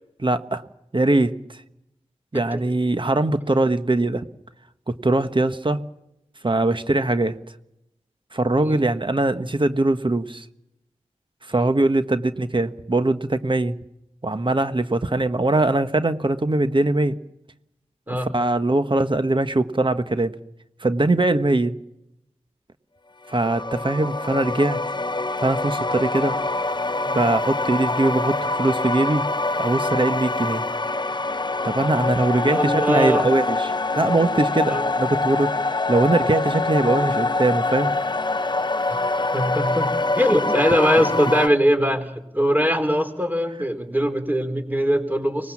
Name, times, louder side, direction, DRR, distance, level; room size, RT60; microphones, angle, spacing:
voice 1, 0.2-0.6 0.9-1.6 2.3-4.2 4.9-5.8 6.4-7.4 8.3-10.4 11.5-13.8 14.2-17.2 18.1-20.3 20.8-21.7 23.3-24.8 25.4-26.4 27.1-29.2 29.6-30.6 31.6-37.9, right 2 dB, 45° right, 10 dB, 1.3 m, -21 dB
sound 1, 23.3-41.5, left 2 dB, 40° left, 0.8 m, -25 dB
voice 2, 32.5-33.3 34.6-34.9 39.3-45.5, equal, 15° right, 7 dB, 4.0 m, -22 dB
24.5 x 20.0 x 7.3 m, 0.83 s
wide cardioid pair, 50°, 12 cm